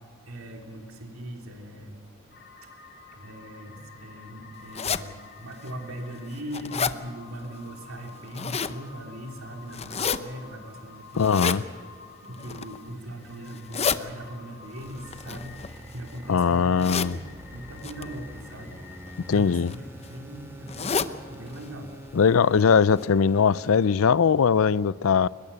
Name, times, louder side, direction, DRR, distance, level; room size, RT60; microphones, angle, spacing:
voice 1, 0.3-2.0 3.1-11.6 12.2-22.0, right 1 dB, 75° right, 3.3 m, -40 dB
sound 1, 2.3-19.9, left 5 dB, 50° left, 3.4 m, -50 dB
sound 2, 4.7-5.0 5.7-5.8 6.2-7.0 8.1-8.8 9.7-10.2 11.2-11.6 12.3-12.8 13.5-14.0 15.1-16.1 16.8-17.1 17.8-18.0 19.1-19.3 19.7-19.8 20.0-20.1 20.7-21.1 21.5-21.6 21.9-22.0 22.6-22.7 23.0-23.1, left 6 dB, 30° left, 0.7 m, -29 dB
voice 2, 11.2-11.6 16.3-17.2 19.3-19.7 22.1-25.3, left 6 dB, 75° left, 0.5 m, -20 dB
sound 3, 14.8-23.9, equal, 10° right, 2.4 m, -46 dB
22.5 x 21.0 x 6.9 m
head